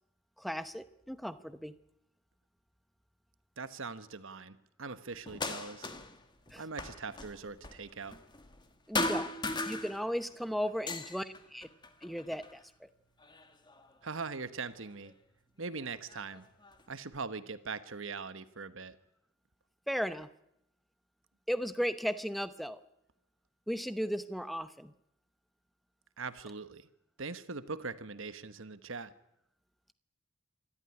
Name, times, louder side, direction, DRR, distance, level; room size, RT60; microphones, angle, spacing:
voice 1, 0.4-1.7 6.5-6.6 8.9-9.3 9.7-11.7 12.0-12.9 19.9-20.3 21.5-22.8 23.7-24.9, equal, ahead, 12 dB, 0.8 m, -36 dB
voice 2, 3.6-5.9 6.6-8.2 14.0-15.1 15.6-16.5 16.9-19.0 26.2-26.9 27.2-29.1, right 4 dB, 60° right, 13 dB, 1.1 m, -41 dB
sound 1, 5.3-6.2 6.5-8.7 9.0-10.3 10.7-12.6 13.2-14.1 15.1-15.2 15.8-16.8, left 2 dB, 20° left, 1.5 m, -38 dB
26.5 x 13.0 x 9.9 m, 0.81 s
head